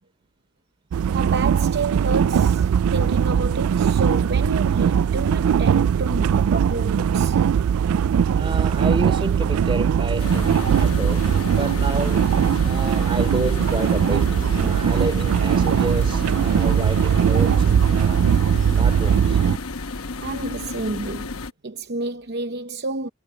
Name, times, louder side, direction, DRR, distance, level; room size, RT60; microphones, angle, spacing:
sound 1, 0.9-19.6, right 8 dB, 80° right, 0.3 m, -20 dB
voice 1, 1.1-7.5 20.2-23.1, right 3 dB, 50° right, 0.8 m, -30 dB
voice 2, 8.3-12.3 12.6-18.3 18.7-19.4, right 1 dB, 25° right, 3.1 m, -30 dB
sound 2, 10.2-21.5, left 3 dB, 75° left, 1.0 m, -32 dB
head